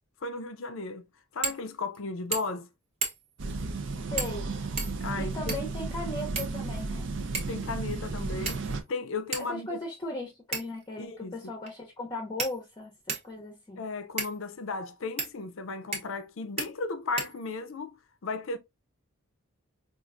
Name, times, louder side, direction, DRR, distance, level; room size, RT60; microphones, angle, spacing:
voice 1, 0.2-1.1 1.3-2.7 5.0-5.6 7.5-9.8 11.0-11.4 13.3-13.4 13.8-18.0 18.2-18.6, left 3 dB, 60° left, 0.5 m, -35 dB
sound 1, 1.4-1.6 1.9-2.0 2.3-2.6 3.0-3.4 4.2-4.4 4.8-5.8 6.3-6.9 7.3-7.6 8.5-8.9 9.3-9.5 10.5-10.9 11.7-11.8 12.4-13.3 14.2-14.4 15.2-15.3 15.9-16.3 16.6-16.7 17.2-17.7, right 4 dB, 30° right, 0.8 m, -35 dB
sound 2, 3.4-8.8, right 3 dB, 55° right, 0.5 m, -34 dB
voice 2, 4.0-4.5 5.2-7.1 9.4-13.8, left 1 dB, 20° left, 0.7 m, -37 dB
4.4 x 2.5 x 2.4 m
head